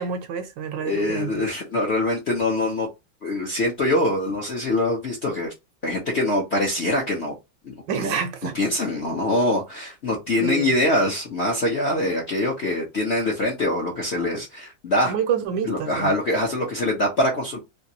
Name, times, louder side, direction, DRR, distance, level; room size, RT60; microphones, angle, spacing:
voice 1, 0.0-1.4 7.9-8.6 10.4-10.7 15.0-16.1, right 7 dB, 75° right, 1.2 m, -28 dB
voice 2, 0.8-2.9 3.2-5.5 5.8-7.3 7.6-8.2 8.5-15.1 15.7-17.6, left 1 dB, 55° left, 0.7 m, -24 dB
3.4 x 2.9 x 2.7 m
omnidirectional pair, 2.2 m